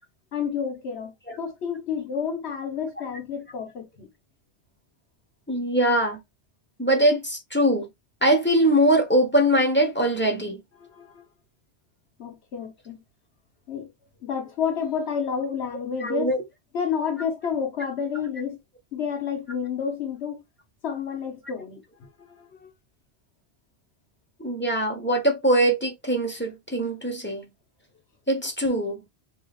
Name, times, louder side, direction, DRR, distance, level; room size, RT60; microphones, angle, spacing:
voice 1, 0.3-4.1 10.9-11.2 12.2-13.0 13.7-13.9 14.2-16.3 16.7-18.6 18.9-20.4 20.8-22.1 22.6-22.7, left 7 dB, 85° left, 1.4 m, -30 dB
voice 2, 5.5-6.2 6.8-7.9 8.2-10.6 16.0-16.4 24.4-27.5 28.3-29.0, right 1 dB, 10° left, 1.0 m, -22 dB
4.7 x 3.2 x 2.5 m
omnidirectional pair, 1.1 m